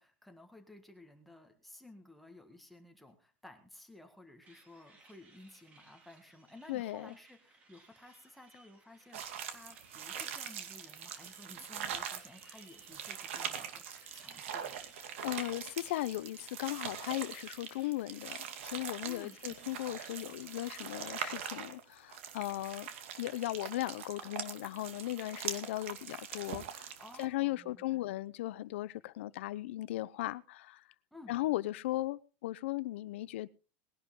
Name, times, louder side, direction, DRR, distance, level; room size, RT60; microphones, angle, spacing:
voice 1, 0.0-14.9 19.0-19.4 27.0-28.0 31.1-31.4, left 2 dB, ahead, 1.7 m, -55 dB
sound 1, 4.4-21.3, right 3 dB, 20° right, 2.7 m, -62 dB
voice 2, 6.7-7.1 15.2-18.4 18.6-22.9 23.2-26.9 27.2-30.8 31.3-33.5, left 16 dB, 70° left, 0.8 m, -37 dB
sound 2, 9.1-27.2, right 8 dB, 80° right, 2.4 m, -43 dB
20.0 x 11.5 x 3.8 m
supercardioid pair, 175°, 7 cm